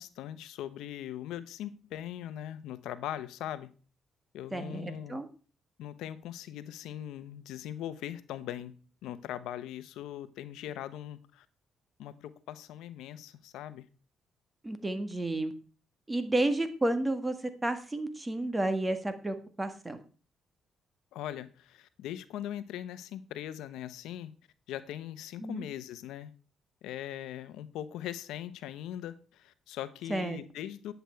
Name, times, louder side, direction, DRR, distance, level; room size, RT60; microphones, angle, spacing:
voice 1, 0.0-3.7 4.3-5.2 5.8-11.5 12.0-13.9 21.1-24.3 24.7-26.3 26.8-30.9, left 11 dB, 90° left, 14 dB, 0.8 m, -40 dB
voice 2, 4.5-5.3 14.6-15.5 16.1-17.4 17.6-20.0 25.4-25.6 30.1-30.4, right 1 dB, 15° right, 9 dB, 1.7 m, -31 dB
10.5 x 8.0 x 4.5 m, 0.37 s
cardioid pair, 90°, 0 cm